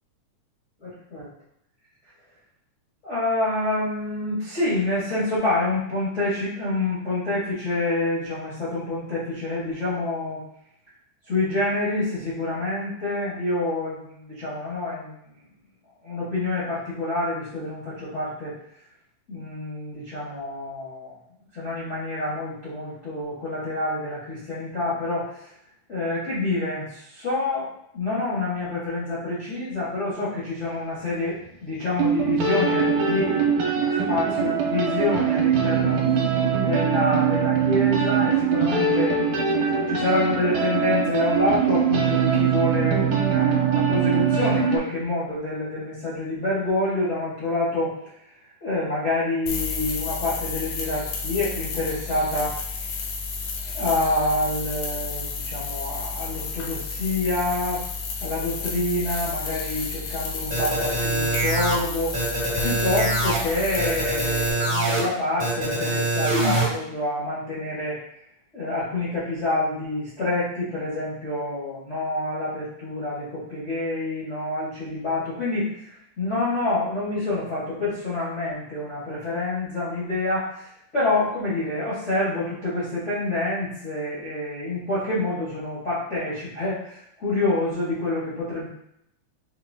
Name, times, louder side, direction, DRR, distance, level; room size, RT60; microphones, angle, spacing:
voice 1, 0.8-1.3 3.0-10.4 11.3-15.2 16.0-18.5 19.3-21.1 21.5-25.5 25.9-31.4 31.6-33.3 34.1-36.0 36.6-39.1 39.5-47.9 48.6-52.9 53.7-57.8 58.2-62.2 62.6-68.0 68.5-88.7, left 2 dB, 55° left, -11 dB, 0.7 m, -27 dB
sound 1, 31.5-31.6 32.0-44.8, right 6 dB, 75° right, 2.0 m, -22 dB
sound 2, 49.5-64.5, left 4 dB, 75° left, 1.7 m, -32 dB
sound 3, 60.5-61.7 62.1-63.4 63.8-65.0 65.4-66.6, right 2 dB, 35° right, 0.7 m, -24 dB
5.8 x 2.8 x 2.6 m, 0.74 s
omnidirectional pair, 3.7 m